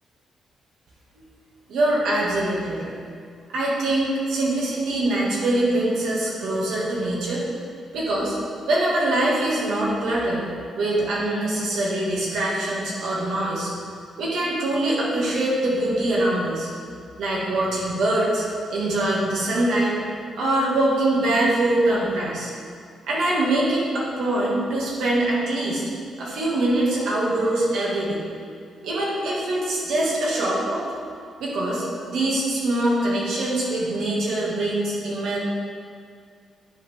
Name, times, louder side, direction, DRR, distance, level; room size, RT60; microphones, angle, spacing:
voice 1, 1.7-3.0 3.5-7.4 7.9-8.4 8.7-13.7 14.2-16.7 17.2-18.4 18.7-19.9 20.3-22.5 23.1-25.8 26.2-28.2 28.8-30.8 31.4-35.4, right 1 dB, 80° right, -5 dB, 2.1 m, -23 dB
9.8 x 5.7 x 3.6 m, 2.2 s
cardioid pair, 120°, 0 cm